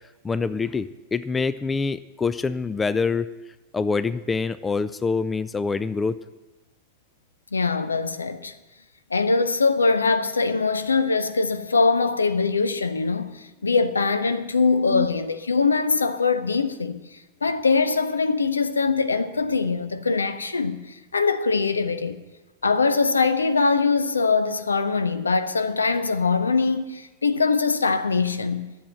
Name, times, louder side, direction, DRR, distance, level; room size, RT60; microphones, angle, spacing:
voice 1, 0.2-3.3 3.7-6.2 14.9-15.1, left 4 dB, 15° left, 0.4 m, -25 dB
voice 2, 7.5-8.5 9.1-17.0 17.4-22.2 22.6-28.7, left 4 dB, 75° left, 0.7 m, -22 dB
11.0 x 7.3 x 7.7 m
figure-of-eight pair, 90°, 0 cm